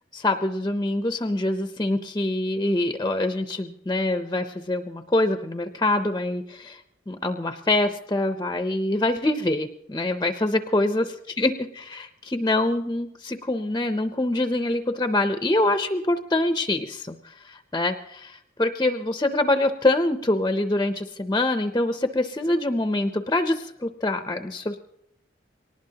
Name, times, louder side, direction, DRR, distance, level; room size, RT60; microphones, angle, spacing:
voice 1, 0.1-6.8 7.1-11.1 11.4-24.8, left 2 dB, 20° left, 8 dB, 0.6 m, -25 dB
23.5 x 19.0 x 2.8 m, 0.79 s
head